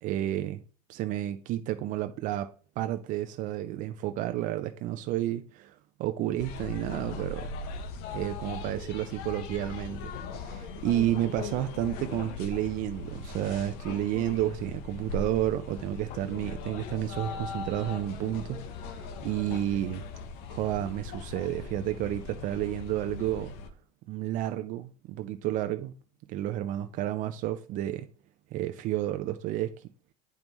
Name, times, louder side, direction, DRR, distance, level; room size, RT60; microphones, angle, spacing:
voice 1, 0.0-0.6 0.9-2.5 2.8-7.5 8.1-18.6 18.9-20.0 20.5-23.5 24.1-25.9 26.3-28.1 28.5-29.7, right 13 dB, 50° right, 0.5 m, -31 dB
sound 1, 6.4-23.7, left 4 dB, 60° left, 0.9 m, -39 dB
9.3 x 5.3 x 3.0 m
supercardioid pair, 125°, 17 cm